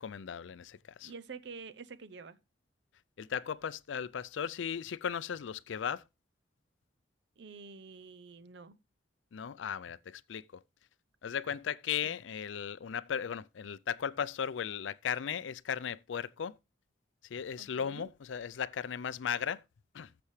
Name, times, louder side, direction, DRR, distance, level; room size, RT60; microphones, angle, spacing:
voice 1, 0.0-1.1 3.2-6.0 9.3-10.6 11.2-16.6 17.3-19.6 19.9-20.1, left 8 dB, 75° left, 0.4 m, -36 dB
voice 2, 1.0-2.4 7.4-8.8 12.0-12.2 17.6-18.1, right 4 dB, 60° right, 0.6 m, -48 dB
14.0 x 6.8 x 3.2 m
head